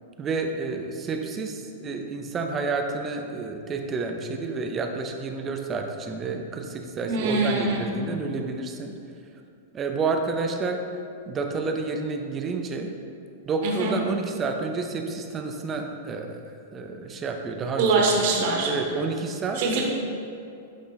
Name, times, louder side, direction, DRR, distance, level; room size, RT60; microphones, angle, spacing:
voice 1, 0.2-8.9 9.7-10.8 11.3-12.9 13.5-16.4 16.7-18.0 18.6-19.8, right 4 dB, 15° right, 4 dB, 0.5 m, -30 dB
voice 2, 7.0-7.8 13.6-13.9 17.8-18.7 19.5-19.8, right 3 dB, 45° right, 0 dB, 1.1 m, -23 dB
11.0 x 3.7 x 3.9 m, 2.6 s
supercardioid pair, 170°, 0 cm